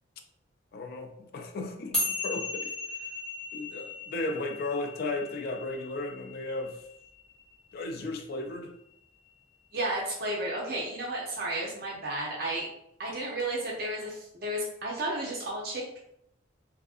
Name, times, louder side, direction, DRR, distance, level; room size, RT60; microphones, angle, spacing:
voice 1, 0.7-3.1 3.5-6.8 7.7-8.8, left 2 dB, 50° left, 5 dB, 0.3 m, -35 dB
sound 1, 1.9-8.5, left 2 dB, 5° left, 1.0 m, -37 dB
voice 2, 9.7-12.7 13.0-16.0, right 1 dB, 55° right, -3 dB, 0.5 m, -33 dB
2.6 x 2.4 x 2.4 m, 0.77 s
head